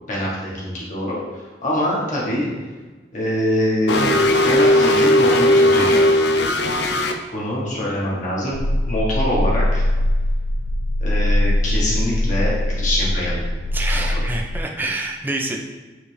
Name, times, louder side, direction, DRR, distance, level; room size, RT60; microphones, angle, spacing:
voice 1, 0.1-2.5 3.1-6.0 7.3-8.6 8.9-9.8 11.0-13.5 13.9-14.2, equal, 45° left, -6 dB, 1.5 m, -24 dB
sound 1, 3.9-7.1, left 1 dB, 75° left, 0.6 m, -16 dB
sound 2, 8.5-14.6, left 1 dB, 50° right, 0.4 m, -21 dB
voice 2, 13.7-15.6, right 2 dB, 10° right, 1 dB, 0.7 m, -27 dB
9.8 x 3.4 x 3.5 m, 1.3 s
head